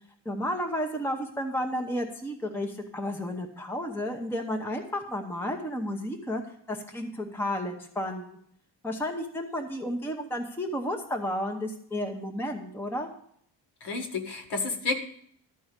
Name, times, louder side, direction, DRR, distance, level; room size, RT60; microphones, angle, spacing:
voice 1, 0.2-6.4 6.7-8.4 8.8-13.1, equal, 5° left, 3 dB, 0.8 m, -32 dB
voice 2, 13.8-15.0, left 3 dB, 60° left, 5 dB, 1.7 m, -30 dB
13.0 x 4.7 x 8.0 m, 0.65 s
cardioid pair, 175°, 46 cm